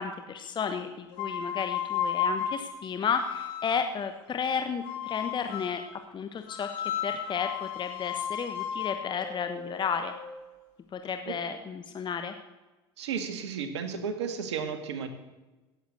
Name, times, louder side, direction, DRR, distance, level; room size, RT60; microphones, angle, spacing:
voice 1, 0.0-5.8 6.1-10.1 10.9-12.3, left 6 dB, 35° left, 7 dB, 1.2 m, -33 dB
sound 1, 1.1-4.0 4.8-5.9 6.5-10.5, left 8 dB, 70° left, 2.5 m, -34 dB
voice 2, 13.0-15.1, right 6 dB, 80° right, 8 dB, 1.9 m, -33 dB
17.0 x 8.0 x 8.0 m, 1.1 s
hypercardioid pair, 80°, 14 cm